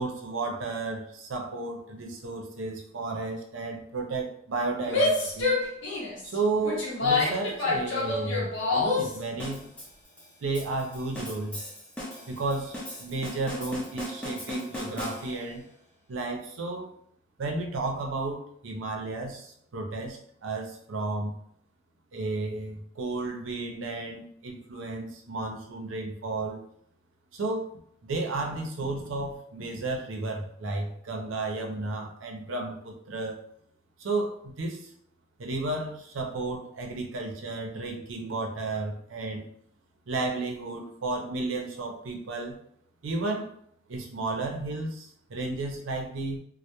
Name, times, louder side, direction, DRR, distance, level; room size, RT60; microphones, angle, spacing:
voice 1, 0.0-5.6 6.2-9.7 10.4-11.6 12.3-15.7 16.1-16.9 17.4-21.3 22.1-26.6 27.3-27.7 28.0-33.4 34.0-34.9 35.4-39.5 40.1-42.6 43.0-43.5 43.9-46.4, right 3 dB, 90° right, 2 dB, 0.5 m, -33 dB
Female speech woman speaking / Yell, 4.8-9.2, left 3 dB, 75° left, 0.7 m, -27 dB
sound 1, 9.4-15.6, left 1 dB, 5° left, 0.4 m, -39 dB
2.1 x 2.0 x 2.8 m, 0.66 s
head